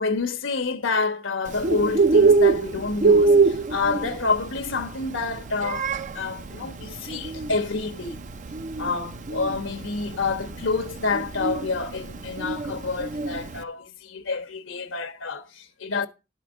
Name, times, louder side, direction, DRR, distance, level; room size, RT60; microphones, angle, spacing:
voice 1, 0.0-8.2 8.8-16.1, left 4 dB, 85° left, 1.1 m, -28 dB
Bird, 1.5-13.6, right 4 dB, 40° right, 0.5 m, -24 dB
12.0 x 5.1 x 6.1 m
head